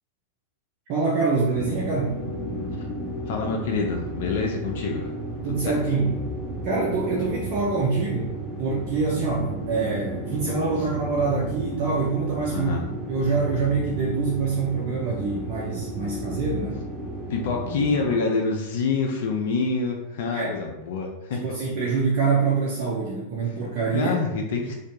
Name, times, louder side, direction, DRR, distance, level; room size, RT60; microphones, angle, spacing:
voice 1, 0.9-2.1 5.4-6.2 6.6-12.7 13.1-16.8 20.3-20.5 21.3-24.1, right 4 dB, 50° right, -4 dB, 0.5 m, -25 dB
sound 1, 1.5-18.1, right 1 dB, 10° left, 0.9 m, -33 dB
voice 2, 3.3-5.1 5.6-5.8 12.5-12.8 17.3-21.4 23.9-24.7, left 4 dB, 65° left, 2 dB, 0.3 m, -26 dB
2.6 x 2.2 x 2.7 m, 0.90 s
hypercardioid pair, 95°, 0 cm